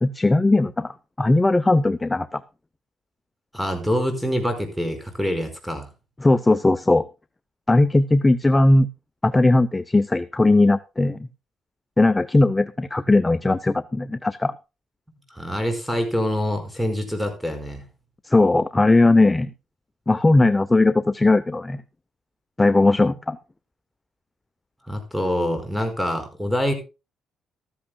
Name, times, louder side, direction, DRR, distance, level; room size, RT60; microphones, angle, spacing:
voice 1, 0.0-2.4 6.2-7.0 7.7-8.9 9.2-11.2 12.0-14.5 18.2-19.5 20.1-21.8 22.6-23.4, left 2 dB, 15° left, 13 dB, 0.7 m, -18 dB
voice 2, 3.5-5.9 15.3-17.8 24.9-26.7, equal, ahead, 7 dB, 5.0 m, -25 dB
14.5 x 14.0 x 2.3 m, 0.29 s
cardioid pair, 90°, 0 cm